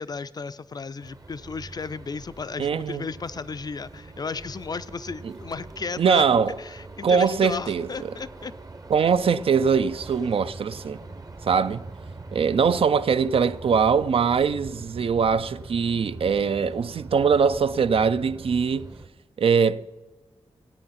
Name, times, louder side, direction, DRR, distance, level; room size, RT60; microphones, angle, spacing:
voice 1, 0.0-6.3 6.6-8.5, left 4 dB, 40° left, 0.4 m, -34 dB
sound 1, 1.0-19.1, right 3 dB, 35° right, 0.8 m, -42 dB
voice 2, 2.6-3.0 5.2-5.3 6.0-6.5 7.0-8.1 8.9-11.0 11.4-11.8 12.3-18.9 19.4-19.9, right 6 dB, 60° right, 0.4 m, -22 dB
16.0 x 8.7 x 5.7 m
wide cardioid pair, 125°, 11 cm